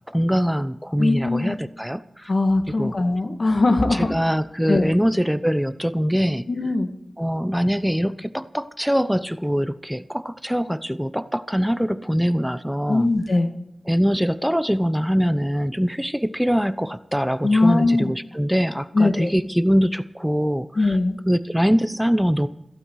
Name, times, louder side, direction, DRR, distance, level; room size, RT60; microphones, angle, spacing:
voice 1, 0.1-2.3 2.7-2.9 3.9-6.5 7.2-13.1 13.9-21.0 21.3-22.5, equal, 5° right, 12 dB, 0.8 m, -23 dB
voice 2, 1.0-1.6 2.3-4.1 4.7-4.9 6.5-6.9 12.9-13.5 17.4-18.1 18.9-19.3 20.8-21.2, left 2 dB, 65° left, 6 dB, 2.1 m, -20 dB
17.0 x 15.5 x 4.8 m, 0.85 s
cardioid pair, 45°, 0 cm